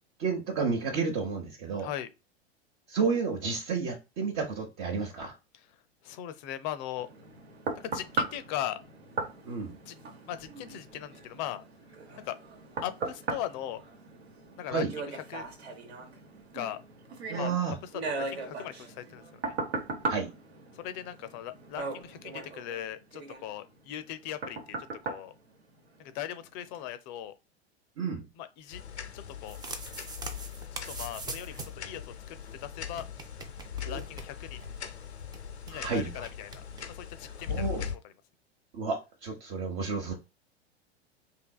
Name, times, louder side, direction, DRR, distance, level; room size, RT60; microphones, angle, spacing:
voice 1, 0.2-1.9 2.9-5.4 9.4-9.7 14.7-14.9 17.3-17.8 20.1-20.3 28.0-28.2 33.9-34.0 35.7-36.2 37.5-37.9 38.7-40.1, right 5 dB, 50° right, 0.9 m, -31 dB
voice 2, 1.8-2.1 5.5-5.7 6.0-7.1 7.8-8.8 9.9-10.0 10.3-11.6 12.2-12.4 12.8-13.8 14.6-15.5 16.5-16.8 17.4-17.5 18.3-19.6 20.7-24.8 25.0-25.4 26.0-27.3 28.4-28.8 29.1-29.6 30.9-33.1 33.9-34.6 35.7-38.1, left 11 dB, 45° left, 0.5 m, -39 dB
sound 1, 7.0-26.2 26.7-26.9, right 3 dB, 75° right, 1.0 m, -38 dB
sound 2, 28.7-38.0, left 8 dB, 90° left, 0.6 m, -40 dB
sound 3, 29.2-31.9 32.2-32.3 32.4-32.5 32.9-34.8 35.0-35.1 35.3-35.8 36.2-36.8, right 3 dB, 15° right, 0.5 m, -42 dB
3.5 x 2.7 x 2.3 m
hypercardioid pair, 95°, 32 cm